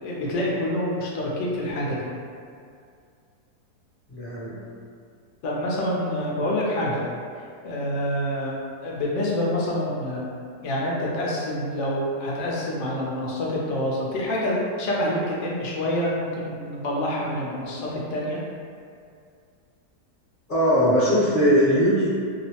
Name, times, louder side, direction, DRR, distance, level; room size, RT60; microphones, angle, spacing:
voice 1, 0.0-2.0 5.4-7.0 7.6-8.5 8.8-10.3 10.6-18.4, left 1 dB, 65° left, -4 dB, 0.8 m, -27 dB
voice 2, 4.1-4.6 20.5-22.1, equal, 40° left, -12 dB, 0.9 m, -20 dB
2.9 x 2.0 x 2.7 m, 2.3 s
omnidirectional pair, 1.8 m